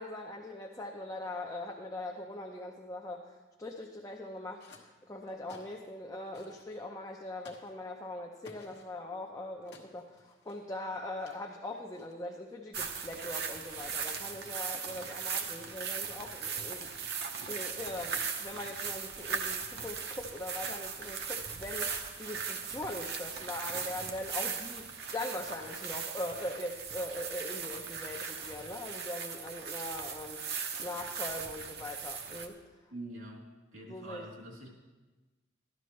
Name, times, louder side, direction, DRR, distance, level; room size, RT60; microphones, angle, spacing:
voice 1, 0.0-3.2 3.6-16.9 17.5-30.4 30.8-32.6 33.9-34.2, left 1 dB, 15° left, 0 dB, 0.6 m, -41 dB
sound 1, 4.1-4.9 5.3-6.0 6.3-6.7 7.4-7.7 8.4-8.9 9.6-11.5 11.9-12.3, left 3 dB, 55° left, 1.2 m, -57 dB
sound 2, 12.7-32.5, right 6 dB, 55° right, 0.9 m, -38 dB
voice 2, 32.9-33.4 33.7-34.7, right 1 dB, 85° right, -2 dB, 3.0 m, -45 dB
13.5 x 11.5 x 3.2 m, 1.2 s
head